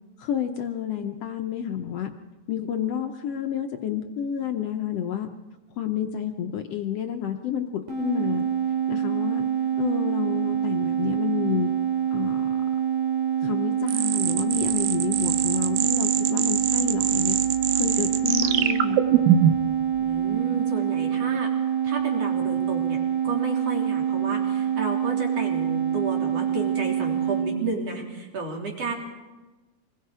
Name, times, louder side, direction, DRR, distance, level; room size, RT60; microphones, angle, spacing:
voice 1, 0.2-2.1 2.5-5.3 5.8-8.4 8.9-9.4 9.8-11.7 12.1-12.6 13.4-17.4 17.7-19.0, left 9 dB, 75° left, 5 dB, 1.4 m, -30 dB
sound 1, 7.9-27.5, right 9 dB, 70° right, 5.4 m, -26 dB
sound 2, 13.9-19.7, right 10 dB, 90° right, 2.7 m, -24 dB
voice 2, 20.0-21.5 21.8-28.9, right 3 dB, 45° right, 0 dB, 4.1 m, -32 dB
26.5 x 21.0 x 4.9 m, 1.2 s
omnidirectional pair, 4.0 m